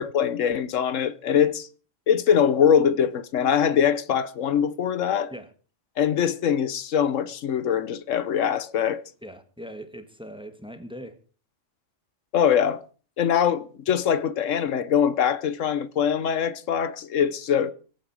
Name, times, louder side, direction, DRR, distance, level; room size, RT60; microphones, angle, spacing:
voice 1, 0.0-1.7 2.1-5.3 6.0-9.0 12.3-12.8 13.2-17.7, left 8 dB, 85° left, 1.3 m, -23 dB
voice 2, 9.2-11.2, equal, 5° right, 1.5 m, -40 dB
23.5 x 8.8 x 4.8 m
omnidirectional pair, 1.3 m